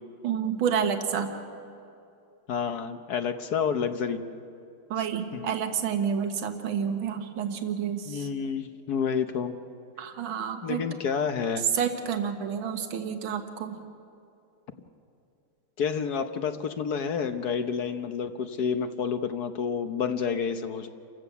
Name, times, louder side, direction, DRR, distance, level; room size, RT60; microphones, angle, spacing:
voice 1, 0.2-1.3 4.9-8.3 10.0-10.9 11.7-13.8, right 7 dB, 75° right, 5 dB, 2.1 m, -29 dB
voice 2, 2.5-4.2 5.3-5.5 8.1-9.5 10.6-11.7 15.8-20.9, left 6 dB, 60° left, 8 dB, 1.2 m, -29 dB
29.0 x 15.5 x 6.9 m, 2.7 s
omnidirectional pair, 2.3 m